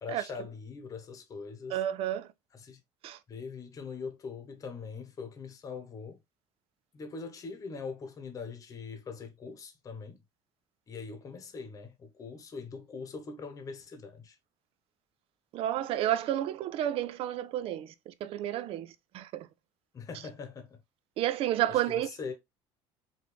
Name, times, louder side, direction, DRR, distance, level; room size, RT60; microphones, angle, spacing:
voice 1, 0.0-1.8 2.6-2.8 3.3-6.2 6.9-10.2 10.9-14.4 19.9-20.8 21.7-22.3, left 5 dB, 30° left, 1.0 m, -42 dB
voice 2, 1.7-2.3 3.0-3.2 15.5-19.5 21.2-22.1, right 12 dB, 55° right, 0.5 m, -31 dB
5.1 x 2.6 x 3.2 m
cardioid pair, 145°, 11 cm